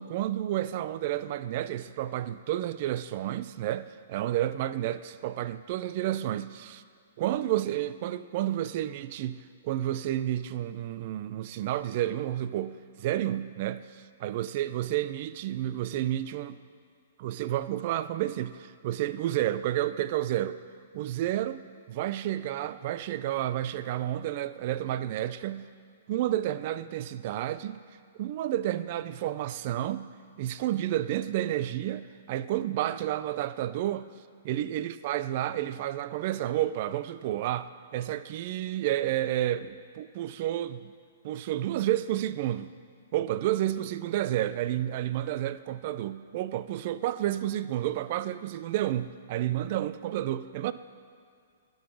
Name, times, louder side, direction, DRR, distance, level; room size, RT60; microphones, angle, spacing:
voice 1, 0.0-6.8 7.2-16.6 17.2-20.6 20.9-21.6 21.9-25.7 26.1-27.8 28.2-30.1 30.4-34.1 34.4-40.9 41.2-42.7 43.1-50.7, right 13 dB, 50° right, 14 dB, 0.3 m, -30 dB
10.0 x 3.9 x 7.0 m, 2.3 s
hypercardioid pair, 135°, 0 cm